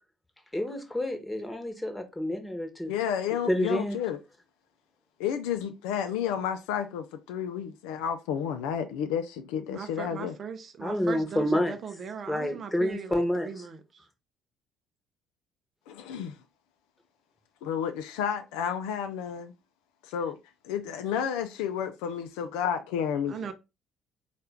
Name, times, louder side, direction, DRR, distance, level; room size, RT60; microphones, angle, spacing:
voice 1, 0.5-2.9 3.5-4.0 10.8-11.8 12.3-13.5, left 1 dB, 10° left, 1.1 m, -28 dB
voice 2, 2.9-4.2 5.2-10.4 15.9-16.4 17.6-19.5 20.0-20.4 20.6-23.5, left 8 dB, 65° left, 0.4 m, -31 dB
voice 3, 9.7-13.8 23.3-23.5, right 6 dB, 40° right, 0.6 m, -39 dB
4.3 x 2.4 x 3.5 m
figure-of-eight pair, 50°, 0 cm